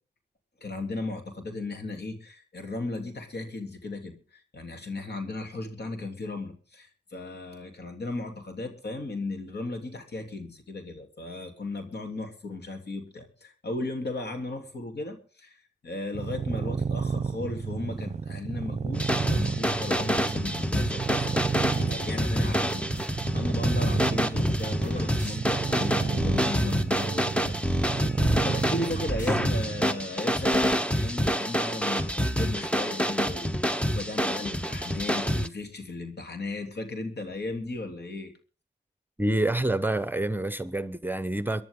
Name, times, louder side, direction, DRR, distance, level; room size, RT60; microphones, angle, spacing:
voice 1, 0.6-27.6 27.8-38.3, left 2 dB, 70° left, 3.2 m, -36 dB
sound 1, 16.1-30.0, right 5 dB, 40° right, 0.7 m, -31 dB
sound 2, 18.9-35.5, equal, 5° left, 1.1 m, -27 dB
sound 3, 21.7-23.1 23.7-27.1 27.4-27.5 27.7-29.7, left 1 dB, 50° left, 5.6 m, -44 dB
voice 2, 39.2-41.6, right 1 dB, 10° right, 1.0 m, -27 dB
24.0 x 10.5 x 3.8 m
cardioid pair, 50°, 18 cm